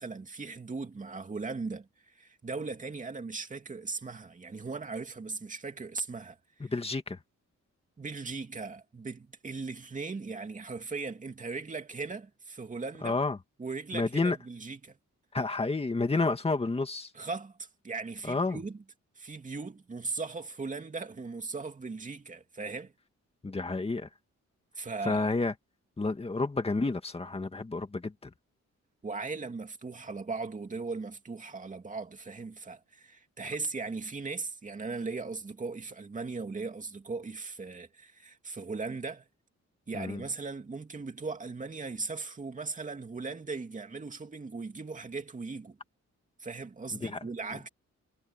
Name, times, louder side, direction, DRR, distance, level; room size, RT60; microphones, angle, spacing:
voice 1, 0.0-6.7 8.0-13.2 13.6-15.0 17.1-18.8 19.2-22.9 24.7-25.3 29.0-39.2 39.9-45.8 46.4-47.7, right 4 dB, 25° right, 2.7 m, -38 dB
voice 2, 6.6-7.2 13.0-13.4 13.9-14.4 15.3-17.1 18.3-18.6 23.4-24.1 25.0-25.5 26.0-28.3 39.9-40.2 47.0-47.2 47.5-47.6, left 3 dB, 20° left, 2.0 m, -30 dB
wide cardioid pair, 150°, 29 cm